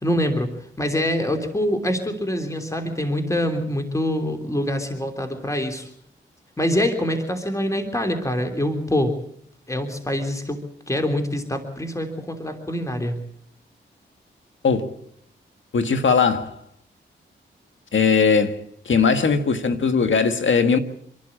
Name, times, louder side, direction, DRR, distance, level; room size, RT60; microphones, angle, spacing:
voice 1, 0.0-5.9 6.6-9.2 9.7-13.2, left 1 dB, 15° left, 3.2 m, -25 dB
voice 2, 15.7-16.5 17.9-18.6 18.9-20.8, left 5 dB, 70° left, 1.7 m, -19 dB
26.5 x 12.0 x 8.7 m
cardioid pair, 50°, 21 cm